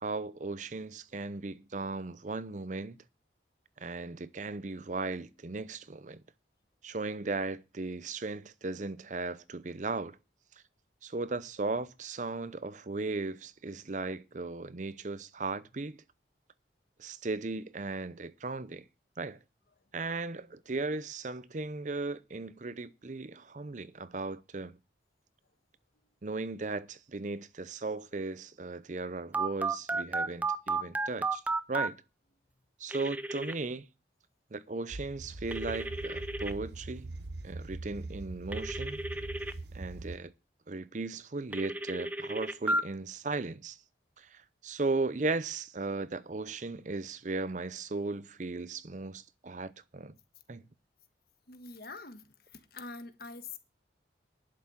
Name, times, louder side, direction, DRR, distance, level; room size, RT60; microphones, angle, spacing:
voice 1, 0.0-3.0 3.8-6.2 6.8-10.2 11.0-16.0 17.0-18.9 19.2-19.4 19.9-24.7 26.2-31.4 31.7-31.9 32.8-33.9 34.5-37.1 37.4-39.0 39.7-40.3 40.7-43.8 44.2-50.1 50.5-50.6, right 3 dB, 45° right, 0.7 m, -36 dB
Telephone, 29.3-31.9 32.9-33.5 35.5-36.5 38.5-39.5 41.5-42.8, right 2 dB, 10° right, 0.7 m, -33 dB
sound 1, 34.9-40.2, right 2 dB, 70° right, 0.8 m, -42 dB
voice 2, 51.5-52.3 52.5-53.6, left 3 dB, 55° left, 1.5 m, -44 dB
11.5 x 6.7 x 7.2 m
head